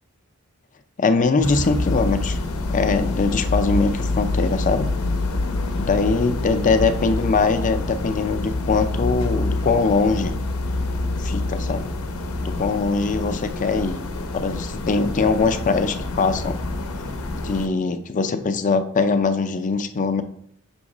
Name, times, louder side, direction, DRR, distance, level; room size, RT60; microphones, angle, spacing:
voice 1, 1.0-2.4 2.7-4.9 5.8-10.3 11.2-11.9 12.4-14.0 14.3-16.6 17.3-20.2, left 4 dB, 35° left, 9 dB, 0.5 m, -22 dB
sound 1, 1.4-17.7, left 2 dB, 90° left, 0.7 m, -26 dB
6.1 x 3.1 x 4.9 m, 0.64 s
head